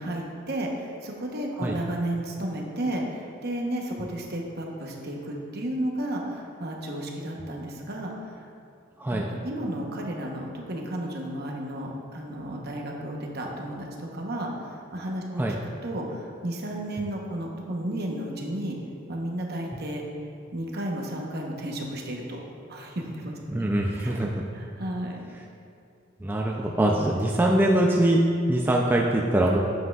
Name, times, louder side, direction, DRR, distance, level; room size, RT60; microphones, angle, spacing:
voice 1, 0.0-8.5 9.1-14.5 14.9-15.5 15.8-18.7 19.1-20.0 20.5-22.4 22.7-24.1 24.5-25.3, right 1 dB, 55° right, 0 dB, 0.9 m, -33 dB
voice 2, 23.5-24.4 26.2-28.2 28.5-29.6, right 1 dB, 10° right, -2 dB, 0.3 m, -23 dB
7.9 x 7.5 x 2.3 m, 2.5 s
head